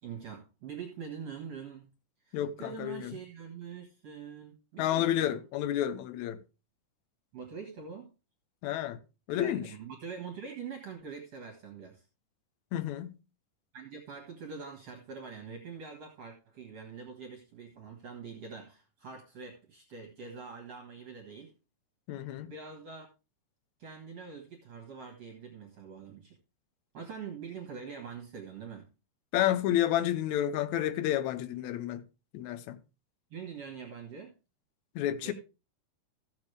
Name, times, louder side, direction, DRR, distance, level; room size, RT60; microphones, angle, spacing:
voice 1, 0.0-1.9 2.2-5.4 7.3-8.1 9.4-12.1 13.7-21.5 22.4-23.1 23.8-26.4 26.9-28.9 33.3-34.3 35.2-35.3, right 6 dB, 55° right, 2.5 m, -44 dB
voice 2, 2.3-3.2 4.8-6.4 8.6-9.0 9.3-9.7 12.7-13.2 22.1-22.5 29.3-32.0 32.3-32.8 35.0-35.3, left 12 dB, 75° left, 2.0 m, -30 dB
15.0 x 7.2 x 3.3 m
omnidirectional pair, 3.8 m